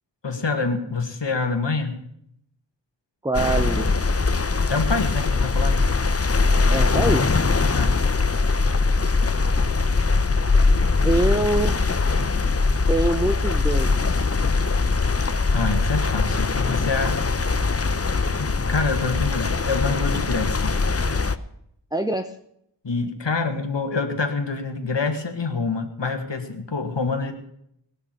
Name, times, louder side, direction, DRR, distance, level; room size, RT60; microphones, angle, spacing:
voice 1, 0.2-2.0 4.7-5.9 7.7-8.0 15.5-17.2 18.4-20.8 22.8-27.3, left 4 dB, 70° left, 4 dB, 2.2 m, -26 dB
voice 2, 3.2-3.9 6.7-7.3 11.0-11.8 12.9-14.3 21.9-22.3, right 2 dB, 10° right, 6 dB, 0.8 m, -24 dB
sound 1, 3.3-21.4, left 4 dB, 30° left, 0.8 m, -21 dB
19.5 x 6.7 x 9.1 m, 0.72 s
wide cardioid pair, 70°, 45 cm